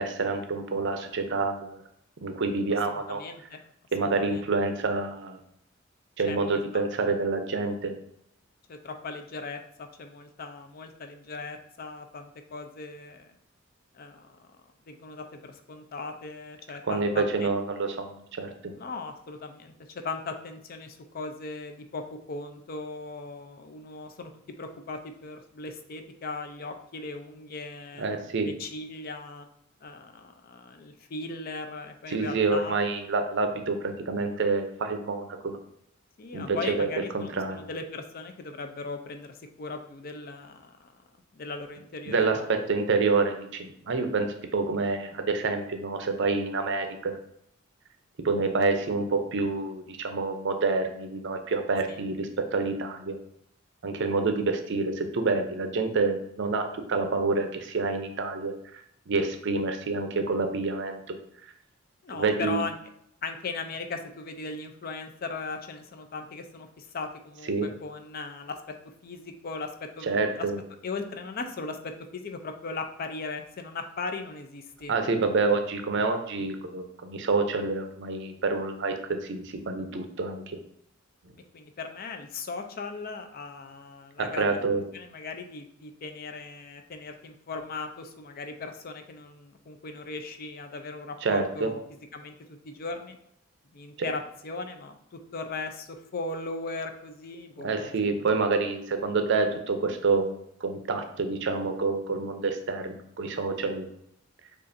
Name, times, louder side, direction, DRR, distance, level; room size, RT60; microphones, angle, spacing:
voice 1, 0.0-1.8 2.2-3.2 3.9-5.4 6.2-7.9 16.9-18.7 28.0-28.5 32.1-35.6 36.3-36.9 37.1-37.6 42.1-47.1 48.2-53.2 53.8-58.8 59.1-61.2 62.1-62.6 67.5-67.7 70.0-70.6 74.9-80.4 84.2-84.8 91.2-91.7 97.6-100.3 100.6-103.9, right 3 dB, 60° right, 6 dB, 0.5 m, -27 dB
voice 2, 3.1-3.6 4.0-4.5 6.2-6.8 8.7-13.3 13.9-14.4 14.9-17.5 18.7-22.0 22.3-24.3 24.6-28.1 28.4-29.5 29.8-32.8 33.5-33.6 36.2-40.9 41.3-42.5 51.9-52.1 62.0-62.8 63.2-68.6 69.0-69.7 70.0-70.1 70.3-70.4 70.8-71.8 72.1-74.9 81.5-91.8 92.1-93.2 93.7-97.9, left 3 dB, 45° left, 6 dB, 0.5 m, -38 dB
6.7 x 2.5 x 2.6 m, 0.73 s
head